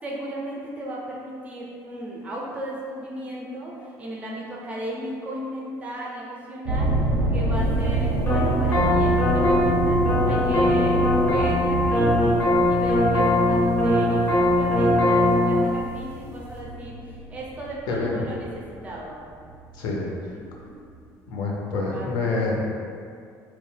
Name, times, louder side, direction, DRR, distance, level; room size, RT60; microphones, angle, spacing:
voice 1, 0.0-7.0 7.3-10.0 10.3-12.4 12.7-19.2 20.3-20.8 21.3-21.4 21.8-22.5, right 1 dB, 20° right, -4 dB, 0.4 m, -36 dB
sound 1, 6.7-18.9 19.5-19.9 20.5-20.6 20.9-21.0, right 2 dB, 90° right, 0.6 m, -27 dB
sound 2, 8.3-15.6, left 1 dB, 30° left, 0.5 m, -20 dB
voice 2, 21.3-22.7, left 3 dB, 80° left, -2 dB, 0.5 m, -26 dB
2.9 x 2.1 x 3.1 m, 2.3 s
cardioid pair, 175°, 7 cm